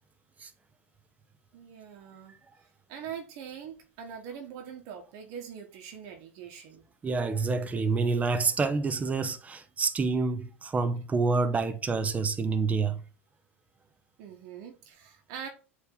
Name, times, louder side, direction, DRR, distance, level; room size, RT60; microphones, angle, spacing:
voice 1, 1.5-2.4 2.9-6.8 14.2-15.5, right 8 dB, 55° right, 1.4 m, -43 dB
voice 2, 7.0-13.0, right 4 dB, 20° right, 0.9 m, -27 dB
8.1 x 3.1 x 4.0 m
hypercardioid pair, 90°, 7 cm